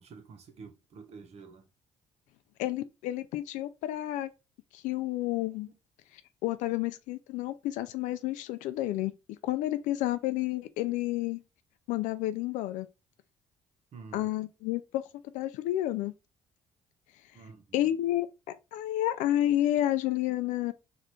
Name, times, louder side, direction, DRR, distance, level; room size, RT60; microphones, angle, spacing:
voice 1, 0.0-1.7 5.7-5.8 13.9-14.3 17.3-17.9, right 5 dB, 55° right, 1.0 m, -49 dB
voice 2, 2.6-4.3 4.7-5.7 6.4-9.1 9.4-11.4 11.9-12.9 14.1-15.0 15.3-16.1 17.7-18.3 18.7-20.7, left 14 dB, 80° left, 0.4 m, -30 dB
4.0 x 2.6 x 3.1 m
supercardioid pair, 75°, 13 cm